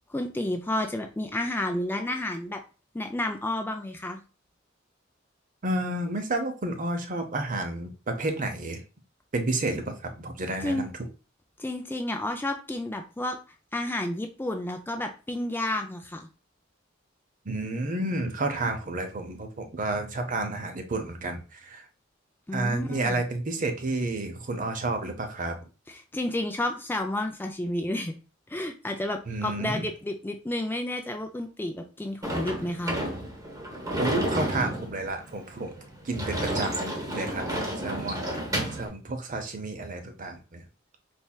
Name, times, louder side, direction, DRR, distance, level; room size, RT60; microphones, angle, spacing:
voice 1, 0.1-2.6 2.9-4.2 10.6-10.9 11.6-13.4 13.7-16.3 22.5-23.2 25.9-28.2 28.5-33.0, left 1 dB, 10° left, 4 dB, 0.4 m, -31 dB
voice 2, 5.6-8.8 9.3-10.9 17.4-21.8 22.5-25.6 29.3-29.9 34.0-35.7 36.0-40.6, right 2 dB, 45° right, 6 dB, 0.7 m, -31 dB
Sliding door / Slam, 32.2-38.9, right 1 dB, 15° right, 1.0 m, -31 dB
4.3 x 3.3 x 2.3 m, 0.32 s
head